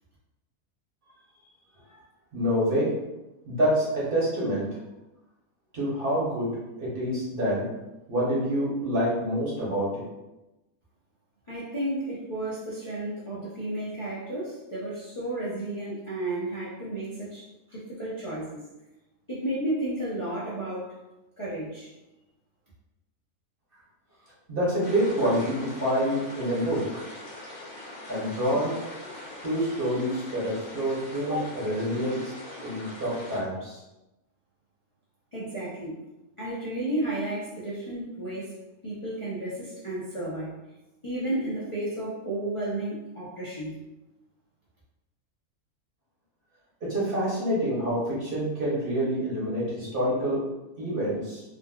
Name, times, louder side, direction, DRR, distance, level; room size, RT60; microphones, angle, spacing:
voice 1, 2.3-2.9 3.5-4.7 5.7-6.5 6.8-7.7 8.1-10.0 24.5-27.1 28.1-28.8 29.4-32.3 32.6-33.8 46.8-50.4 50.8-51.4, equal, 45° right, -7 dB, 1.0 m, -27 dB
voice 2, 11.5-18.6 19.3-20.9 21.4-21.9 35.3-36.0 36.4-38.5 38.8-40.5 41.0-43.8, right 1 dB, 35° left, -9 dB, 0.5 m, -32 dB
sound 1, 24.8-33.4, left 1 dB, 80° left, 1.4 m, -42 dB
3.7 x 2.2 x 2.3 m, 0.99 s
omnidirectional pair, 1.5 m